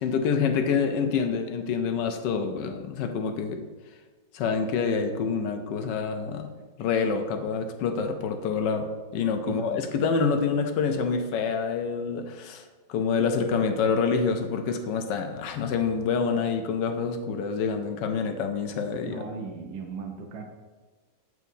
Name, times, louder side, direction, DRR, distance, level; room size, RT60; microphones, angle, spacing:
voice 1, 0.0-3.6 4.3-6.5 6.8-8.9 9.1-12.6 12.9-19.2, left 5 dB, 80° left, 6 dB, 1.2 m, -27 dB
voice 2, 9.5-9.8 19.0-20.4, right 4 dB, 75° right, 3 dB, 1.3 m, -37 dB
8.0 x 4.6 x 2.7 m, 1.3 s
omnidirectional pair, 1.9 m